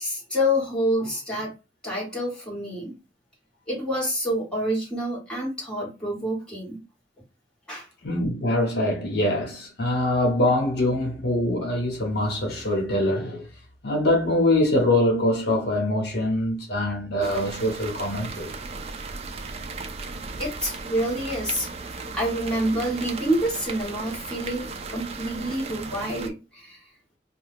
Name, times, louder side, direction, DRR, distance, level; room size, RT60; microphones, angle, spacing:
voice 1, 0.0-1.5 1.8-2.9 3.7-6.8 7.7-7.9 20.4-21.7 22.1-26.8, equal, 5° left, 1.5 m, -27 dB
voice 2, 8.0-13.5 13.8-18.6, left 1 dB, 65° left, 1.0 m, -24 dB
sound 1, 17.2-26.3, right 4 dB, 35° right, 0.4 m, -36 dB
2.7 x 2.3 x 3.4 m
head